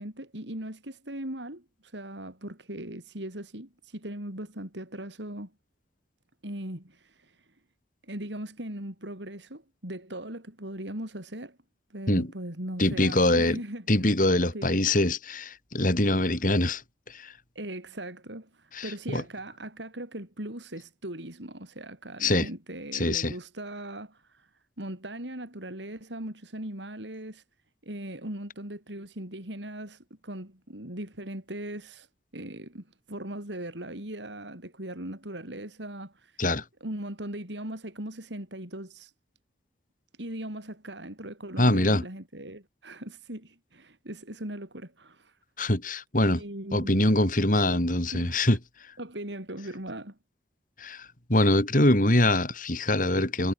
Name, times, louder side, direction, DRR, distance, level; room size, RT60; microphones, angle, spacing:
voice 1, 0.0-5.5 6.4-7.5 8.0-11.6 11.9-14.1 14.5-15.0 17.5-24.5 24.8-27.4 27.8-32.1 32.3-36.4 36.8-39.1 40.2-45.4 46.3-47.1 47.7-47.8 48.1-48.4 49.0-50.2, right 1 dB, 85° right, 6.0 m, -39 dB
voice 2, 12.8-13.6 13.9-16.8 17.1-17.3 18.7-19.2 22.2-22.5 22.9-23.3 36.4-36.6 41.6-42.0 45.6-46.4 46.7-48.6 50.8-53.5, left 1 dB, 50° left, 5.1 m, -24 dB
head